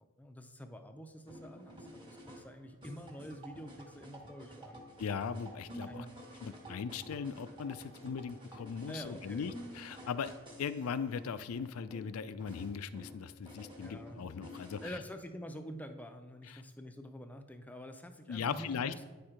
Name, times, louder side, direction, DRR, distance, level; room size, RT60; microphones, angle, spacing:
voice 1, 0.2-4.8 5.9-6.1 8.9-9.5 13.8-14.2 14.8-19.0, equal, 5° left, 7 dB, 0.5 m, -47 dB
sound 1, 1.3-14.9, equal, 20° right, 1.1 m, -51 dB
voice 2, 5.0-6.1 6.4-10.3 10.6-15.0 16.4-16.6 18.3-18.9, left 6 dB, 70° left, 13 dB, 0.4 m, -39 dB
9.1 x 4.4 x 4.9 m, 1.3 s
head